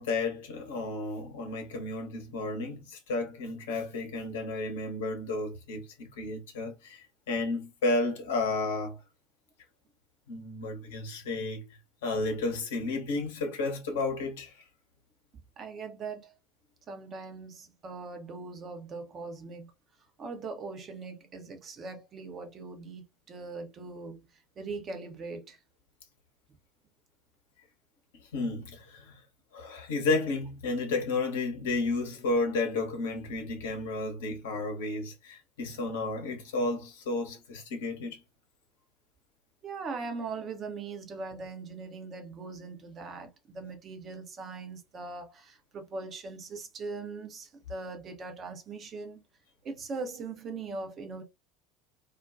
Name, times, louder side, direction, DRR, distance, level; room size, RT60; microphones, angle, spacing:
voice 1, 0.0-9.0 10.3-11.7 12.0-14.6 28.3-29.2 29.5-38.2, left 3 dB, 65° left, 0.8 m, -32 dB
voice 2, 15.6-16.4 16.9-19.7 20.2-25.6 39.6-49.2 49.6-51.2, right 4 dB, 35° right, 0.6 m, -40 dB
2.3 x 2.2 x 2.5 m
figure-of-eight pair, 70°, 0 cm